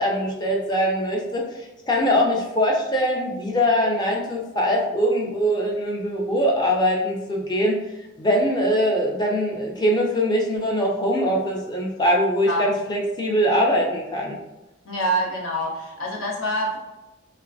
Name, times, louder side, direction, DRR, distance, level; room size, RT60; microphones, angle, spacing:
voice 1, 0.0-1.5 1.9-7.8 8.2-14.4, equal, 20° left, 0 dB, 0.4 m, -22 dB
voice 2, 14.8-16.8, right 1 dB, 90° left, -2 dB, 0.7 m, -26 dB
3.2 x 2.0 x 2.5 m, 1.0 s
head